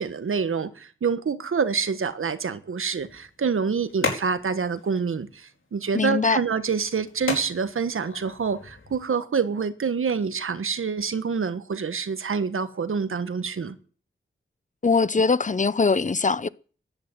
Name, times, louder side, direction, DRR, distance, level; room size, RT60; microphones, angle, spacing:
voice 1, 0.0-13.8, right 5 dB, 85° right, 1.4 m, -27 dB
sound 1, 3.0-9.0, left 4 dB, 75° left, 4.7 m, -36 dB
voice 2, 5.9-6.4 14.8-16.5, left 4 dB, 35° left, 0.7 m, -21 dB
14.0 x 10.5 x 9.2 m
wide cardioid pair, 95°, 21 cm